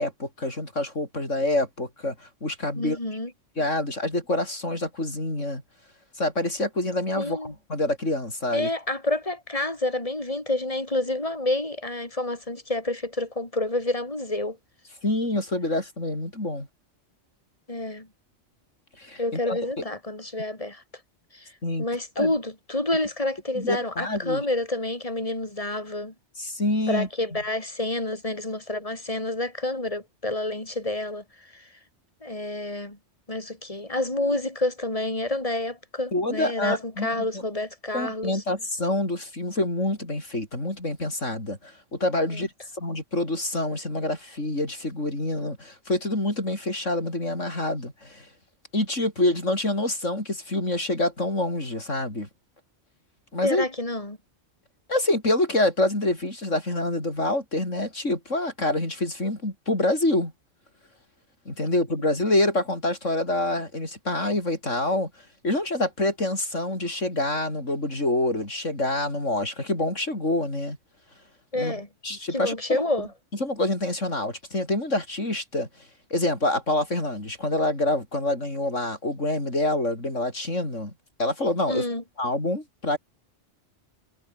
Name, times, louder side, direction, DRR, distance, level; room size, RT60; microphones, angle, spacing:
voice 1, 0.0-3.0 3.6-5.6 6.2-8.7 15.0-16.7 19.0-19.6 21.6-21.9 22.2-22.3 23.6-24.4 26.4-27.1 36.1-37.4 37.9-48.3 48.7-52.3 53.3-53.6 54.9-60.3 61.5-65.1 65.4-70.8 71.6-72.8 73.4-75.7 76.1-80.9 81.2-81.8 82.2-83.0, left 1 dB, 85° left, 7.5 m, -26 dB
voice 2, 2.7-3.3 7.2-7.5 8.5-14.6 17.7-18.1 19.2-20.8 21.3-21.5 21.8-26.1 26.9-31.7 32.2-33.0 33.3-38.4 42.3-42.4 53.4-54.2 71.5-71.9 72.3-73.1 81.7-82.0, left 2 dB, 30° left, 4.5 m, -28 dB
omnidirectional pair, 1.2 m